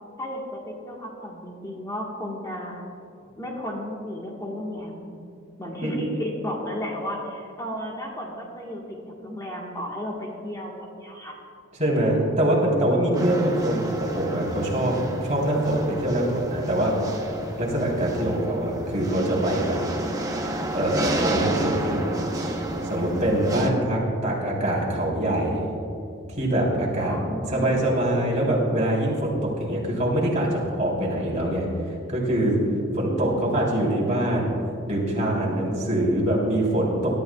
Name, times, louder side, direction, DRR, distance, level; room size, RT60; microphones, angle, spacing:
voice 1, 0.2-2.7 3.4-5.2 5.6-8.8 9.2-10.7 11.0-11.4 27.0-27.8, equal, 20° left, -3 dB, 1.5 m, -33 dB
voice 2, 11.8-15.0 15.2-17.0 17.6-19.8 20.7-22.0 22.8-25.7 26.3-27.2 27.5-31.7 32.1-32.6 32.9-34.5 34.9-37.1, right 1 dB, 40° right, -3 dB, 3.5 m, -24 dB
sound 1, 13.1-23.7, right 1 dB, 20° right, 1.0 m, -30 dB
22.5 x 12.0 x 2.4 m, 2.5 s
head